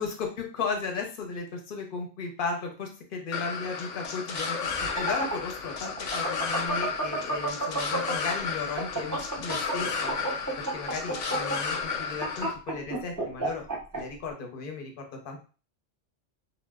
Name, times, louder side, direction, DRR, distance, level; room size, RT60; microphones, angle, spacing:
voice 1, 0.0-13.7 13.9-15.4, left 4 dB, 55° left, 2 dB, 0.7 m, -35 dB
sound 1, 3.3-12.5, left 5 dB, 90° left, 0.9 m, -33 dB
sound 2, 4.7-8.3 8.6-14.0, right 2 dB, 20° right, 0.6 m, -30 dB
2.1 x 2.0 x 3.3 m, 0.35 s
omnidirectional pair, 1.2 m